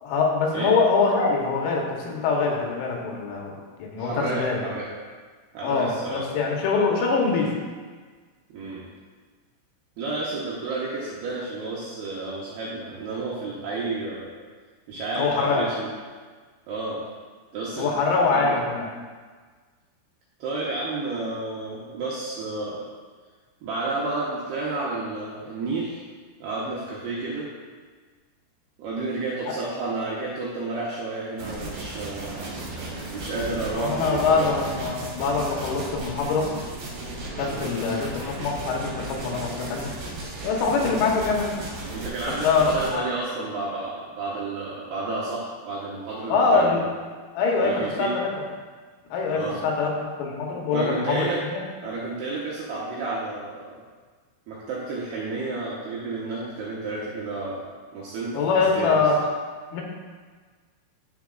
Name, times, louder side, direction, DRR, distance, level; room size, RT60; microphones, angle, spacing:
voice 1, 0.0-3.5 3.8-4.7 5.6-7.6 15.2-15.7 17.8-18.9 33.8-36.5 37.4-39.9 40.4-41.5 42.4-43.1 46.3-46.9 47.3-48.3 49.1-49.9 50.2-51.6 58.3-59.2 59.7-59.8, left 4 dB, 90° left, -1 dB, 4.0 m, -24 dB
voice 2, 4.0-4.9 5.5-6.2 8.5-8.8 10.0-14.3 14.9-15.9 16.7-17.0 17.5-18.6 20.4-22.9 23.6-26.0 26.4-27.5 28.8-32.5 33.1-34.6 37.4-37.7 40.7-41.0 41.9-46.7 47.6-48.1 49.3-49.6 50.7-51.4 51.8-53.8 54.5-57.6 57.9-59.0, right 3 dB, 75° right, -6 dB, 2.5 m, -31 dB
sound 1, 31.4-42.9, right 2 dB, 60° right, 2.4 m, -35 dB
10.0 x 7.8 x 2.5 m, 1.5 s
omnidirectional pair, 5.9 m